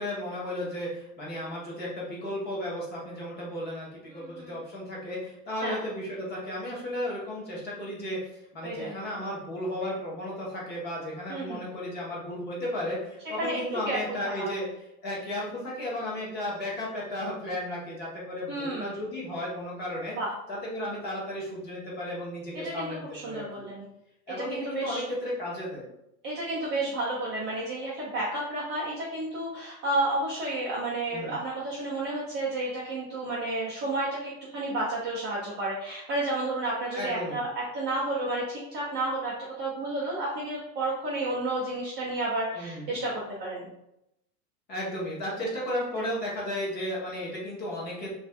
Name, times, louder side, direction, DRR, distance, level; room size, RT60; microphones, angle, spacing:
voice 1, 0.0-8.2 8.5-14.7 15.0-20.2 20.5-23.6 24.3-25.9 31.1-31.4 36.9-37.4 42.5-43.0 44.7-48.1, left 1 dB, 20° left, -5 dB, 0.9 m, -34 dB
voice 2, 4.1-4.6 5.6-5.8 8.6-9.0 11.3-11.6 13.2-14.5 18.5-19.0 20.2-20.3 22.5-23.9 24.3-25.0 26.2-43.7 46.0-46.1, right 2 dB, 25° right, -7 dB, 0.4 m, -31 dB
2.6 x 2.4 x 3.3 m, 0.84 s
supercardioid pair, 150°, 46 cm